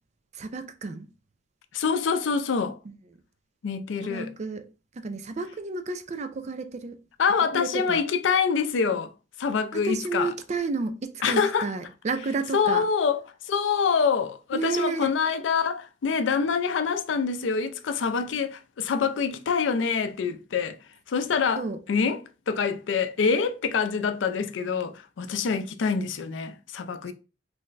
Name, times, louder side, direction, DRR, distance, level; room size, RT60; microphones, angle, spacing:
voice 1, 0.3-1.1 2.9-3.0 4.0-4.7 5.0-7.0 7.5-8.0 9.7-12.8 14.5-15.1 21.6-21.8, right 3 dB, 40° right, 0.4 m, -31 dB
voice 2, 1.7-2.8 3.6-4.3 7.2-9.1 9.4-10.3 11.2-11.7 12.5-13.2 13.5-20.8 21.1-27.1, left 5 dB, 85° left, 0.4 m, -26 dB
3.2 x 2.1 x 3.8 m
head